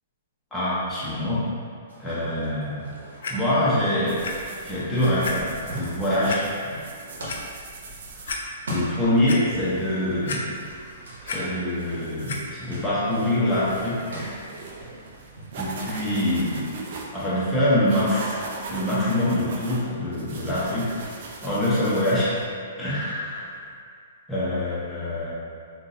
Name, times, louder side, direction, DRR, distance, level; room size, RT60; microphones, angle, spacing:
voice 1, 0.5-1.4 2.0-2.9 3.3-4.2 4.6-6.5 8.7-10.4 11.2-14.4 15.6-16.7 17.1-18.4 18.7-21.0 21.4-22.4 22.8-23.6 24.3-25.3, left 1 dB, 10° left, -11 dB, 1.1 m, -24 dB
sound 1, 1.9-9.6 9.8-16.7, right 1 dB, 85° right, 0.9 m, -41 dB
Clock, 3.2-3.3 4.2-4.3 4.8-4.9 5.2-5.3 6.3-6.4 7.0-7.4 7.9-8.0 8.3-8.4 8.9-9.4 10.3-10.8 11.1-11.4 12.3-12.4 13.1-13.2, left 5 dB, 75° left, 0.4 m, -31 dB
sound 2, 4.1-22.4, right 3 dB, 60° right, 0.5 m, -41 dB
3.7 x 2.6 x 2.7 m, 2.2 s
hypercardioid pair, 140°, 0 cm